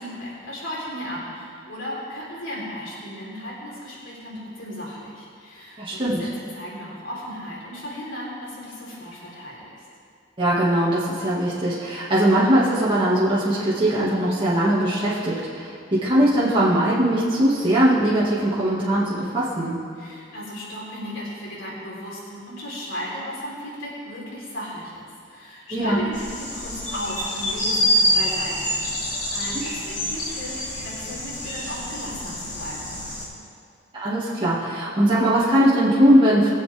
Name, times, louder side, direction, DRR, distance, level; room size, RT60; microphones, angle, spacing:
voice 1, 0.0-9.8 20.0-32.9, equal, 80° left, -6 dB, 3.7 m, -35 dB
voice 2, 5.8-6.3 10.4-19.8 25.7-26.1 29.5-29.6 33.9-36.5, right 1 dB, 25° right, -9 dB, 2.0 m, -20 dB
sound 1, 26.1-33.3, equal, 45° left, 2.7 m, -26 dB
23.0 x 7.9 x 3.5 m, 2.3 s
head